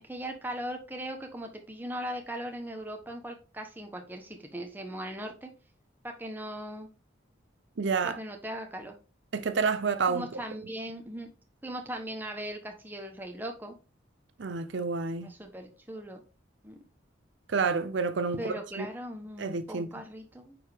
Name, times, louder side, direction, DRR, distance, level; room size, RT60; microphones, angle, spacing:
voice 1, 0.0-5.5 6.0-6.9 8.0-9.0 10.1-11.3 11.6-13.7 15.2-16.2 16.6-16.8 18.3-20.6, right 1 dB, 10° right, 1.2 m, -39 dB
voice 2, 7.8-8.2 9.3-10.3 14.4-15.3 17.5-18.9 19.4-19.9, right 5 dB, 70° right, 0.6 m, -29 dB
9.4 x 4.5 x 3.5 m
head